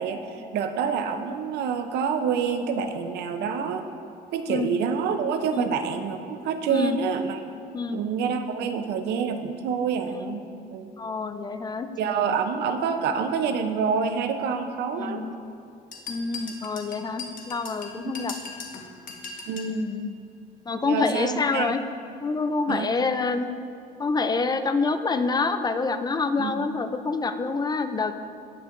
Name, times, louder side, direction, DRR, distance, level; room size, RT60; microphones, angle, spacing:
voice 1, 0.0-3.9 4.3-7.4 7.9-10.4 10.7-10.9 12.0-15.2 19.5-19.9 20.8-21.8 22.7-22.9 26.4-26.7, right 6 dB, 75° right, 7 dB, 0.7 m, -27 dB
voice 2, 11.0-11.9 15.0-15.3 16.1-18.3 19.7-20.1 20.7-21.8 22.2-23.5 24.0-28.3, left 4 dB, 25° left, 9 dB, 0.5 m, -27 dB
sound 1, 15.9-19.8, left 4 dB, 55° left, 1.3 m, -39 dB
18.0 x 6.4 x 2.6 m, 2.5 s
cardioid pair, 110°, 17 cm